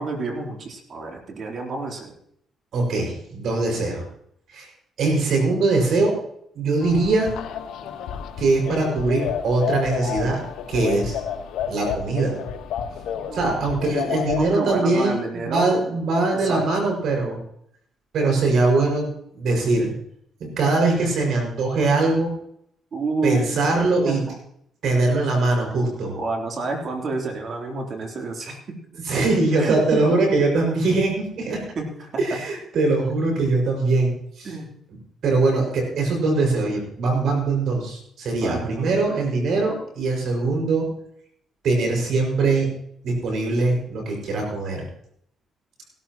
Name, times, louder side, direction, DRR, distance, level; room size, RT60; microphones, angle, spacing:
voice 1, 0.0-2.1 13.3-13.4 13.8-15.8 16.3-17.0 22.9-23.4 24.1-24.4 26.1-28.8 29.6-30.2 31.7-32.2 34.4-34.7 38.4-39.0, right 3 dB, 55° right, 2 dB, 3.2 m, -30 dB
voice 2, 2.7-4.0 4.5-4.7 5.0-6.2 6.5-7.4 8.4-10.4 10.7-11.2 11.7-12.4 13.3-15.2 15.4-17.4 18.1-19.9 20.4-22.3 23.2-24.2 24.8-26.1 29.0-31.6 32.2-34.5 35.2-40.9 41.6-42.7 43.0-44.8, right 3 dB, 70° right, 1 dB, 5.6 m, -22 dB
sound 1, 6.8-14.5, left 8 dB, 85° left, 1.2 m, -30 dB
17.0 x 12.5 x 3.0 m, 0.70 s
cardioid pair, 90°, 0 cm